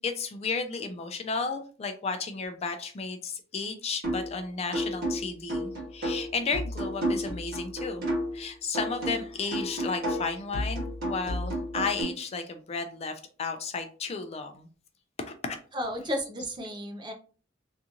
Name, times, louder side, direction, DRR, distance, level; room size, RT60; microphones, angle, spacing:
voice 1, 0.0-8.1 8.3-14.7 15.2-15.6, left 4 dB, 35° left, 7 dB, 0.3 m, -33 dB
sound 1, 4.0-4.4 4.7-8.4 8.7-12.0, equal, 55° right, 1.4 m, -32 dB
voice 2, 15.7-17.1, equal, 25° right, 4 dB, 0.5 m, -33 dB
2.8 x 2.5 x 2.4 m, 0.39 s
head